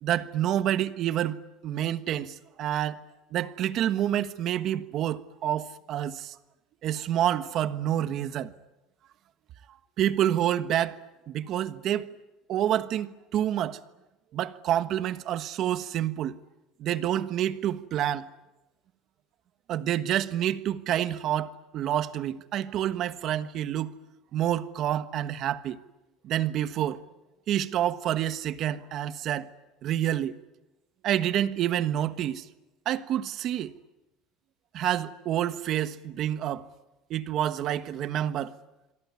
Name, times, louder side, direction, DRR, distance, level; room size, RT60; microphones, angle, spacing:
voice 1, 0.0-3.0 3.3-6.4 6.8-8.5 10.0-11.0 11.3-12.1 12.5-13.8 14.3-16.3 16.8-18.3 19.7-24.0 24.3-25.8 26.2-27.0 27.5-29.5 29.8-30.4 31.0-32.4 32.8-33.7 34.7-36.6 37.1-38.5, right 11 dB, 45° right, 1.3 m, -28 dB
27.0 x 23.0 x 9.7 m
cardioid pair, 150°, 0 cm